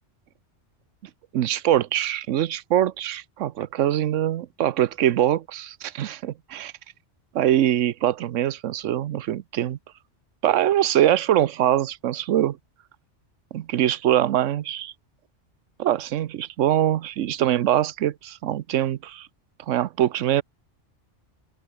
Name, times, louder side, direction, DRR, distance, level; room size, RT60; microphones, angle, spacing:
voice 1, 1.3-6.7 7.3-9.8 10.4-12.6 13.5-14.9 15.8-19.3 19.7-20.4, right 12 dB, 85° right, 1.1 m, -23 dB
omnidirectional pair, 1.2 m